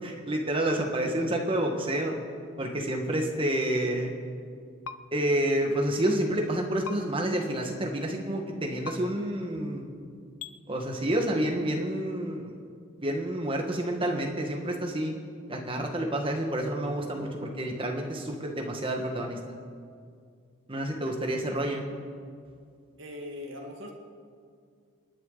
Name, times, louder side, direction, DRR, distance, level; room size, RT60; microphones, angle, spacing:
voice 1, 0.0-2.1 2.6-4.1 5.1-9.8 10.7-12.6 13.0-15.1 15.5-19.6 20.7-21.8, right 1 dB, 25° right, 2 dB, 1.6 m, -29 dB
sound 1, 4.8-5.0 6.8-7.0 8.8-9.0 10.4-10.5, left 5 dB, 85° left, 0.7 m, -37 dB
voice 2, 23.0-23.9, left 1 dB, 65° right, 0 dB, 1.6 m, -40 dB
28.5 x 9.6 x 4.0 m, 2.2 s
head